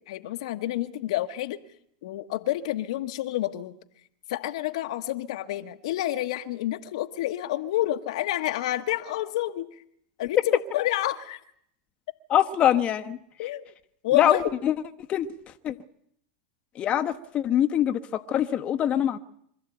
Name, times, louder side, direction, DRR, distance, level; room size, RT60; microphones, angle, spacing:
voice 1, 0.1-1.6 2.0-3.8 4.3-9.7 10.2-11.4 13.4-13.7 14.0-14.5, left 14 dB, 70° left, 8 dB, 1.3 m, -29 dB
voice 2, 12.3-13.2 14.1-14.7 15.1-15.3 15.6-15.7 16.7-19.2, left 10 dB, 35° left, 8 dB, 1.1 m, -24 dB
25.5 x 13.0 x 9.1 m, 0.71 s
hypercardioid pair, 100°, 3 cm